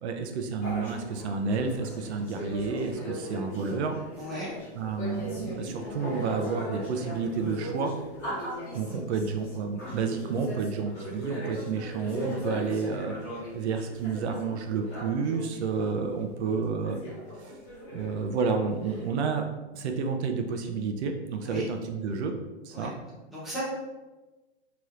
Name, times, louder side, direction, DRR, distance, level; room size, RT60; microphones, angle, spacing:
voice 1, 0.0-4.0 4.8-7.9 8.7-13.2 13.5-17.0 17.3-17.6 17.9-19.5 19.7-22.3 22.6-22.9, right 5 dB, 75° right, 5 dB, 0.5 m, -30 dB
sound 1, 0.6-15.6 16.1-16.2 16.4-19.1, equal, 30° left, 1.4 m, -38 dB
voice 2, 4.2-4.5 8.8-9.0 21.4-21.7 22.7-22.9 23.3-23.6, equal, ahead, -10 dB, 0.7 m, -36 dB
3.1 x 2.9 x 2.4 m, 1.1 s
hypercardioid pair, 155°, 34 cm